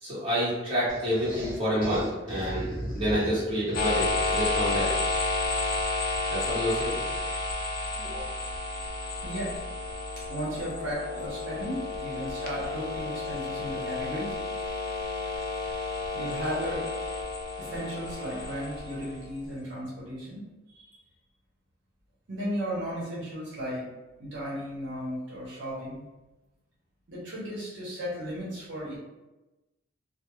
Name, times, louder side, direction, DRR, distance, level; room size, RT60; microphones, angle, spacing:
voice 1, 0.0-4.9 6.3-7.0 8.0-8.1, equal, 30° right, -9 dB, 1.1 m, -28 dB
sound 1, 0.9-4.4, equal, 5° left, 0.9 m, -37 dB
sound 2, 3.7-19.5, left 3 dB, 50° left, 0.4 m, -31 dB
voice 2, 8.0-8.3 9.2-9.5 10.2-14.4 16.1-16.8 17.6-20.4 20.7-21.0 22.3-23.9 24.2-26.0 27.1-29.0, equal, 70° right, -7 dB, 0.8 m, -35 dB
2.3 x 2.0 x 3.0 m, 1.1 s
head